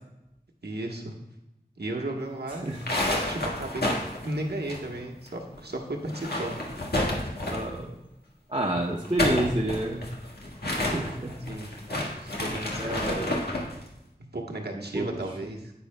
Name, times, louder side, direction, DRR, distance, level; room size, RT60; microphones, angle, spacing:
voice 1, 0.6-1.1 1.8-2.6 3.3-3.8 4.2-6.6 7.2-7.3 11.5-11.7 12.2-13.0 14.3-15.7, right 1 dB, 80° right, 0 dB, 1.2 m, -34 dB
sound 1, 2.7-5.3 5.5-5.6 6.0-7.8 8.9-13.7, left 1 dB, 75° left, 1.6 m, -30 dB
voice 2, 7.5-8.0 8.5-10.0 10.9-11.4 12.8-13.4 14.7-15.1, right 1 dB, 30° right, -3 dB, 0.9 m, -29 dB
10.0 x 8.3 x 2.2 m, 0.91 s
wide cardioid pair, 45°, 17 cm